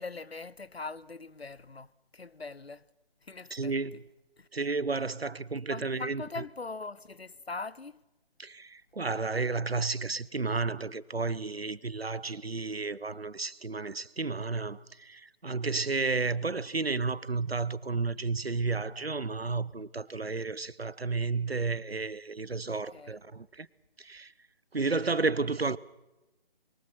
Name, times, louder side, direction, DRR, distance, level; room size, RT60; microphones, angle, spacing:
voice 1, 0.0-2.9 3.2-3.7 4.4-4.5 5.7-8.0 22.7-23.2, left 3 dB, 85° left, 0.9 m, -41 dB
voice 2, 3.5-4.0 4.5-6.4 8.4-23.7 24.0-24.3 24.7-25.8, right 4 dB, 80° right, 1.0 m, -32 dB
24.5 x 23.0 x 6.0 m
figure-of-eight pair, 155°, 30 cm